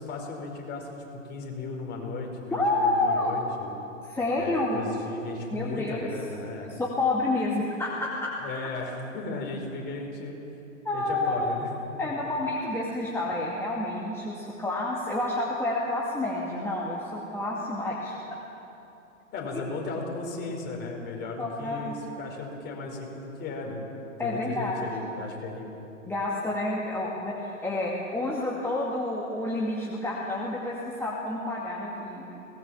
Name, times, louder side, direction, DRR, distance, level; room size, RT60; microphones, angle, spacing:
voice 1, 0.0-3.7 4.4-6.7 8.4-10.4 10.9-11.7 12.0-12.1 19.3-23.8 24.2-25.7, left 3 dB, 25° left, 0 dB, 4.9 m, -36 dB
voice 2, 2.5-3.3 4.0-4.8 5.5-6.1 6.7-8.3 10.8-11.5 12.0-18.4 21.4-22.0 24.2-24.9 26.1-32.4, left 2 dB, 5° left, -5 dB, 2.3 m, -29 dB
23.0 x 19.0 x 7.3 m, 2.9 s
figure-of-eight pair, 120°, 41 cm